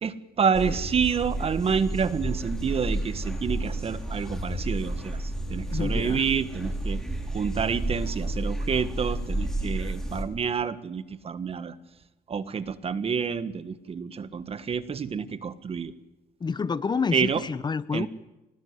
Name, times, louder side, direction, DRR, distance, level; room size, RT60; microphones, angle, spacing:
voice 1, 0.0-11.7 12.3-15.9 17.1-17.4 17.9-18.1, right 6 dB, 35° right, 13 dB, 1.6 m, -28 dB
sound 1, 0.5-10.3, right 1 dB, 5° left, 4.4 m, -31 dB
voice 2, 5.7-6.2 16.4-18.1, left 5 dB, 25° left, 16 dB, 0.8 m, -28 dB
25.5 x 19.5 x 9.7 m, 1.0 s
cardioid pair, 110°, 17 cm